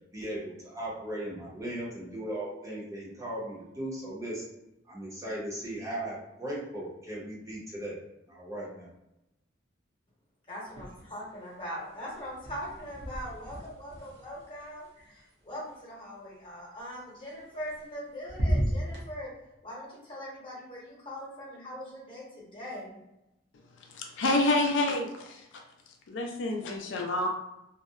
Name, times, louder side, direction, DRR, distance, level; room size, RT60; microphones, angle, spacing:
voice 1, 0.1-4.4 4.9-8.0 8.3-8.9, right 1 dB, 15° right, -6 dB, 0.6 m, -37 dB
voice 2, 10.5-19.3 19.6-23.0, equal, 30° left, -6 dB, 0.9 m, -41 dB
sound 1, 10.7-11.4 11.6-15.7 17.4-18.0 18.3-19.1, equal, 60° right, 0.6 m, -34 dB
voice 3, 23.9-25.4 26.1-27.3, left 2 dB, 80° left, 1 dB, 0.4 m, -28 dB
2.6 x 2.0 x 2.3 m, 0.90 s
head